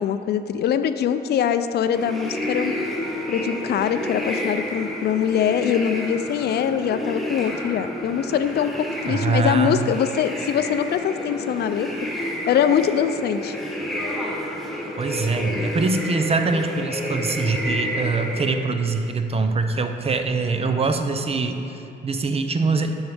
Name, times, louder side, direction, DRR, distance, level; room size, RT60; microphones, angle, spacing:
voice 1, 0.0-2.7 3.3-11.9 12.5-13.6, left 8 dB, 55° left, 10 dB, 0.4 m, -23 dB
sound 1, 1.9-18.5, left 1 dB, ahead, 1.2 m, -30 dB
voice 2, 9.1-9.7 15.0-21.6 22.0-22.9, right 3 dB, 30° right, 6 dB, 0.6 m, -23 dB
10.0 x 6.4 x 3.4 m, 2.8 s
cardioid pair, 90°, 20 cm